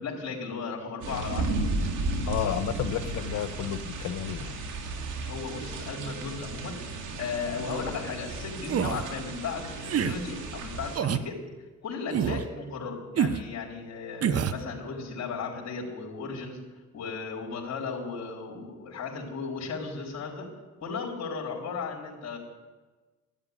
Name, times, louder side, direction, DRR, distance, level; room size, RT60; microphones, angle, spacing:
voice 1, 0.0-1.5 5.2-6.8 7.2-11.4 11.8-16.6 16.9-20.5 20.8-22.4, left 5 dB, 60° left, -3 dB, 4.0 m, -35 dB
sound 1, 1.0-11.0, right 2 dB, 85° right, 2.4 m, -34 dB
voice 2, 2.3-4.5, left 10 dB, 80° left, 11 dB, 1.1 m, -31 dB
sound 2, 8.7-9.1 9.8-10.2 10.9-11.3 12.1-12.5 13.2-13.4 14.2-14.6, right 8 dB, 55° right, 0.8 m, -26 dB
12.5 x 10.0 x 9.6 m, 1.2 s
cardioid pair, 90°, 30 cm